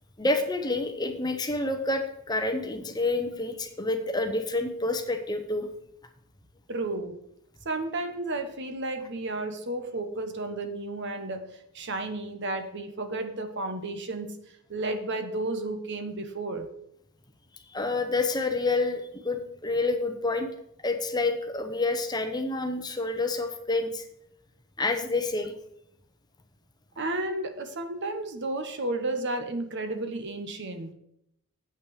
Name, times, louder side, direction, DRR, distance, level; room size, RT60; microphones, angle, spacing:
voice 1, 0.2-5.7 17.7-20.5 20.8-24.0 24.8-25.5, left 2 dB, 20° left, 6 dB, 0.9 m, -28 dB
voice 2, 6.7-7.2 7.6-11.4 11.7-14.4 14.7-16.7 27.0-30.9, right 2 dB, 50° right, 7 dB, 1.1 m, -32 dB
8.4 x 6.0 x 6.4 m, 0.77 s
head